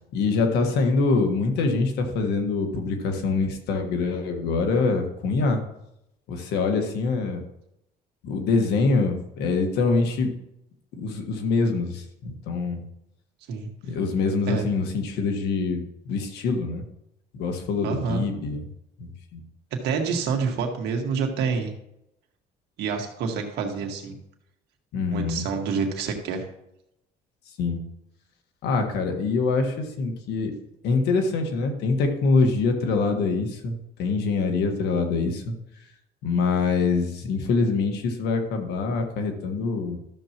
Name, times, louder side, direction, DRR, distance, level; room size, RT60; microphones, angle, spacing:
voice 1, 0.1-5.6 6.3-7.4 8.2-10.3 11.0-12.8 13.8-16.8 17.3-18.6 19.0-19.4 24.9-25.4 27.6-27.8 28.6-30.5 30.8-35.5 36.2-40.0, left 4 dB, 80° left, 4 dB, 1.6 m, -24 dB
voice 2, 17.8-18.2 19.8-21.7 22.8-24.2 25.1-26.5, right 5 dB, 80° right, 3 dB, 1.8 m, -27 dB
13.0 x 7.1 x 3.0 m, 0.81 s
cardioid pair, 110°, 17 cm